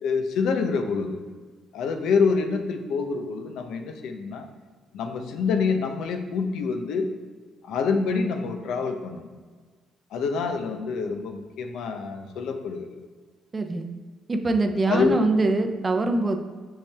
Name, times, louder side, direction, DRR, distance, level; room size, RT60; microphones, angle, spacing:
voice 1, 0.0-1.2 1.7-4.5 4.9-7.1 7.6-9.3 10.1-13.1 14.9-15.1, left 5 dB, 75° left, 6 dB, 0.8 m, -26 dB
voice 2, 13.5-13.9 14.3-16.4, right 2 dB, 20° right, 6 dB, 0.6 m, -23 dB
6.5 x 5.8 x 3.5 m, 1.5 s
cardioid pair, 145°, 0 cm